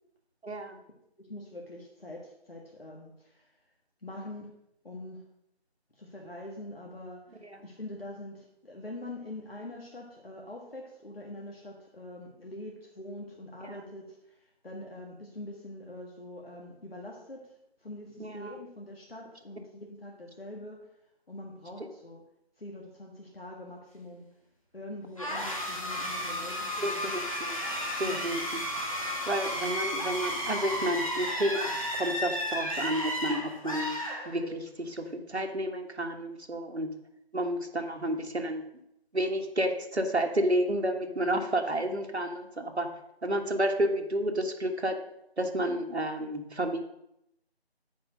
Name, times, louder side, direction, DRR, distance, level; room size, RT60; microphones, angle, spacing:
voice 1, 0.4-0.8 7.4-7.6 13.6-13.8 18.2-18.5 26.8-27.6 28.0-28.4 29.3-34.0 34.2-36.9 37.3-38.6 39.1-42.9 43.2-45.0 45.4-46.8, right 1 dB, 85° right, 4 dB, 1.6 m, -31 dB
voice 2, 1.2-3.5 4.0-4.5 4.8-5.2 5.9-20.9 21.3-22.2 22.6-24.3 24.7-27.1 28.0-28.4, left 1 dB, 65° left, -2 dB, 1.8 m, -44 dB
sound 1, 25.2-34.7, equal, 30° left, 1.5 m, -33 dB
9.1 x 4.9 x 6.4 m, 0.80 s
figure-of-eight pair, 175°, 32 cm